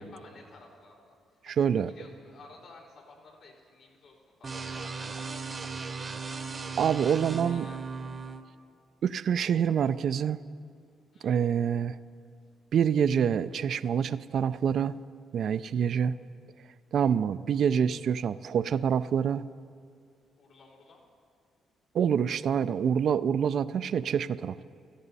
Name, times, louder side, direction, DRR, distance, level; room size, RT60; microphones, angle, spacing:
voice 1, 0.0-7.8 11.1-11.4 20.4-21.0, left 3 dB, 75° left, -6 dB, 4.1 m, -55 dB
voice 2, 1.5-1.9 6.8-7.7 9.0-10.4 11.2-12.0 12.7-15.0 15.3-16.2 16.9-19.5 21.9-24.6, right 8 dB, 60° right, 14 dB, 0.4 m, -26 dB
sound 1, 4.4-8.4, right 4 dB, 35° right, 0.9 m, -37 dB
16.5 x 14.0 x 4.1 m, 2.3 s
cardioid pair, 90°, 0 cm